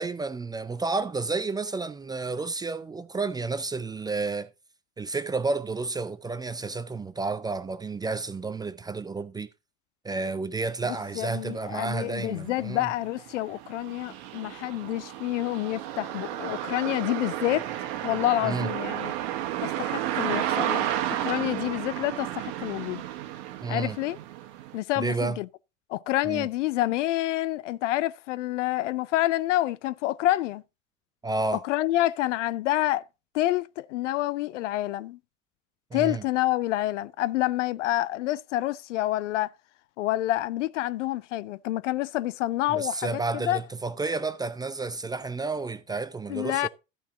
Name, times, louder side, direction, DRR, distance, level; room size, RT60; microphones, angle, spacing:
voice 1, 0.0-4.5 5.0-9.5 10.0-12.9 18.4-18.7 23.6-24.0 25.0-25.4 26.2-26.5 31.2-31.6 35.9-36.2 42.7-46.7, right 3 dB, 10° right, 0.4 m, -31 dB
voice 2, 10.9-17.7 18.0-19.1 19.6-20.9 21.2-23.0 23.7-24.2 24.7-25.5 25.9-30.6 31.5-33.0 33.3-35.2 35.9-39.5 40.0-43.6 46.3-46.7, left 15 dB, 65° left, 0.5 m, -28 dB
sound 1, 11.4-11.5 11.9-24.8, right 12 dB, 55° right, 1.4 m, -32 dB
13.5 x 5.7 x 3.7 m
figure-of-eight pair, 75°, 39 cm